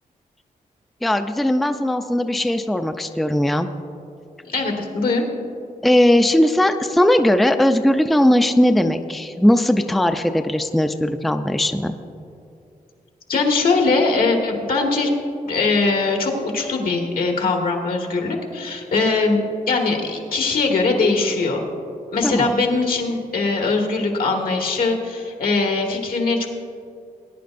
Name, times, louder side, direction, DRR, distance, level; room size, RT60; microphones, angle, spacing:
voice 1, 1.0-3.7 5.8-12.0 22.2-22.5, left 1 dB, ahead, 7 dB, 0.4 m, -18 dB
voice 2, 4.5-5.2 13.3-15.1 15.5-19.4 19.7-21.6 22.1-26.5, left 3 dB, 75° left, 1 dB, 1.7 m, -21 dB
19.5 x 10.0 x 2.6 m, 2.5 s
wide cardioid pair, 115°, 15 cm